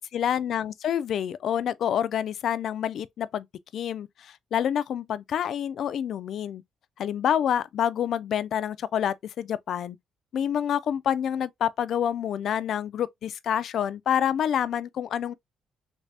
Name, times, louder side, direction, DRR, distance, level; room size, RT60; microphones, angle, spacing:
voice 1, 0.0-3.5 3.7-6.6 7.0-10.0 10.3-15.3, left 9 dB, 65° left, 0.3 m, -27 dB
3.2 x 2.6 x 3.2 m
cardioid pair, 90°, 0 cm